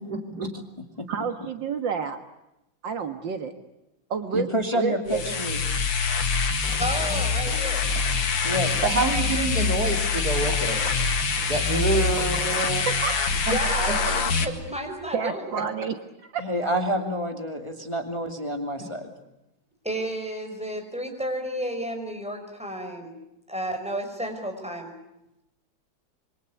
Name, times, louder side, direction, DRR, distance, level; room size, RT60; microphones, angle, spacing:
voice 1, 0.1-0.5 8.8-10.8 11.5-12.8, right 3 dB, 55° right, 4 dB, 3.6 m, -26 dB
voice 2, 1.1-2.2 2.8-3.5 4.1-5.4 12.9-13.1 15.1-16.0 16.3-16.7, right 6 dB, 70° right, 8 dB, 2.2 m, -29 dB
voice 3, 4.3-5.6 8.4-8.8 16.4-19.1, equal, 15° left, 4 dB, 2.5 m, -28 dB
sound 1, 5.1-14.4, left 5 dB, 75° left, 2.7 m, -25 dB
sound 2, 6.6-12.6, left 2 dB, 45° left, 4.1 m, -41 dB
voice 4, 6.8-7.9 13.4-15.7 19.8-23.2 23.5-24.9, right 1 dB, 5° right, 4 dB, 5.5 m, -32 dB
26.5 x 24.0 x 8.3 m, 0.89 s
omnidirectional pair, 2.1 m